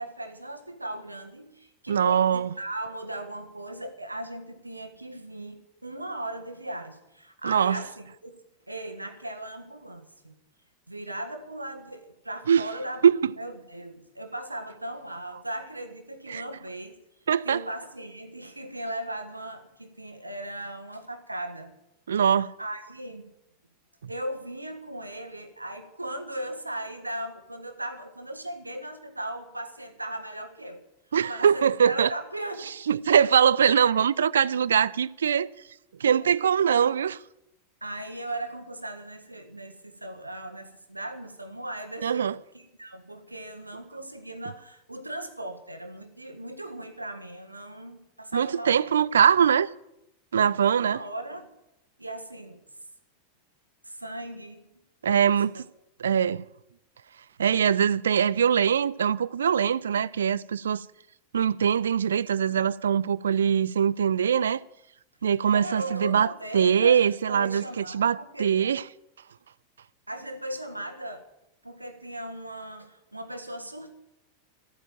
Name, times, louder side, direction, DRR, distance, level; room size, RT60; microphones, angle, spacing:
voice 1, 0.0-8.3 8.7-10.3 10.9-13.0 13.4-17.0 17.4-21.7 22.6-23.3 24.1-30.8 31.3-32.7 33.7-33.9 37.8-42.3 42.5-48.9 50.7-51.5 52.0-52.6 53.8-54.7 55.0-55.4 65.4-68.8 70.1-71.2 71.6-73.9, right 1 dB, 85° right, 1.6 m, -38 dB
voice 2, 1.9-2.5 7.4-7.8 12.5-12.6 13.0-13.1 16.3-16.4 17.3-17.6 22.1-22.5 31.1-32.1 32.9-35.5 36.0-37.2 42.0-42.3 48.3-49.7 50.3-51.0 55.0-55.6 56.0-56.4 57.4-60.8 61.3-64.6 65.2-66.3 66.5-68.8, right 8 dB, 65° right, 0.4 m, -22 dB
14.0 x 9.0 x 8.9 m
figure-of-eight pair, 90°, 0 cm